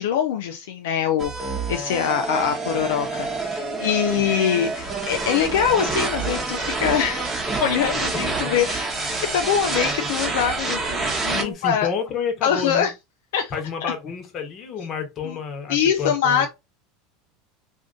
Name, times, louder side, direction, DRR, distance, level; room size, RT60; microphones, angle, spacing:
voice 1, 0.0-7.3 7.6-8.9 9.3-11.9 12.4-12.9 13.3-13.5 15.2-15.4 15.7-16.5, left 8 dB, 80° left, 0.5 m, -23 dB
sound 1, 1.2-11.4, right 3 dB, 15° right, 1.0 m, -27 dB
voice 2, 11.3-12.9 13.5-16.5, left 6 dB, 40° left, 1.1 m, -29 dB
2.6 x 2.5 x 3.6 m
supercardioid pair, 110°, 0 cm